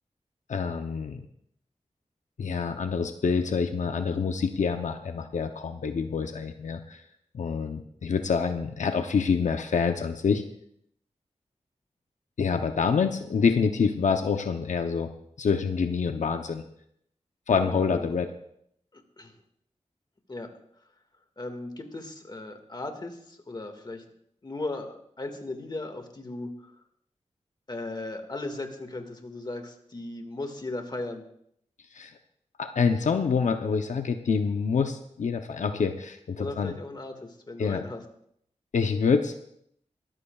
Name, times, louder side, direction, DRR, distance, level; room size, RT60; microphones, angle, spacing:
voice 1, 0.5-1.2 2.4-7.0 7.3-10.4 12.4-15.1 15.4-16.6 17.5-18.3 31.9-32.1 32.6-36.7 37.6-37.8 38.7-39.4, left 5 dB, 90° left, 6 dB, 0.7 m, -26 dB
voice 2, 17.5-18.1 18.9-19.4 20.3-20.5 21.4-24.0 24.4-26.7 27.7-31.2 36.4-37.2 37.5-38.0, left 2 dB, 35° left, 5 dB, 1.9 m, -37 dB
23.0 x 14.0 x 2.4 m, 0.70 s
wide cardioid pair, 95°, 12 cm